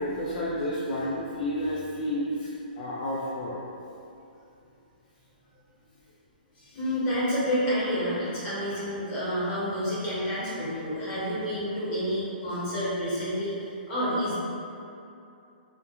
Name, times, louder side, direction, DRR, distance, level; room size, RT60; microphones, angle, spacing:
voice 1, 0.0-2.5 2.8-3.6, left 1 dB, 60° left, -6 dB, 0.4 m, -30 dB
voice 2, 6.5-14.4, equal, 25° left, -10 dB, 1.0 m, -29 dB
2.3 x 2.1 x 2.9 m, 2.7 s
hypercardioid pair, 150°, 5 cm